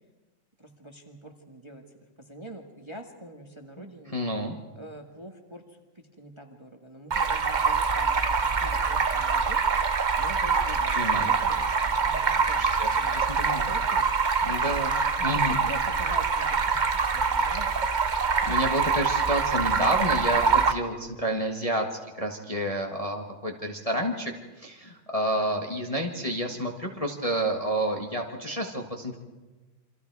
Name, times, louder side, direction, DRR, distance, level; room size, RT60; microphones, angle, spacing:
voice 1, 0.6-1.8 2.2-4.2 4.7-9.6 10.2-14.1 15.2-17.9, right 1 dB, 15° right, 3 dB, 1.6 m, -45 dB
voice 2, 3.8-4.5 10.9-11.3 12.6-13.7 14.4-15.6 18.1-21.8 22.2-24.3 24.6-29.2, right 1 dB, 20° left, 1 dB, 1.6 m, -30 dB
Stream, 7.1-20.7, right 5 dB, 40° right, 0.7 m, -25 dB
28.5 x 25.5 x 4.8 m, 1.2 s
omnidirectional pair, 2.1 m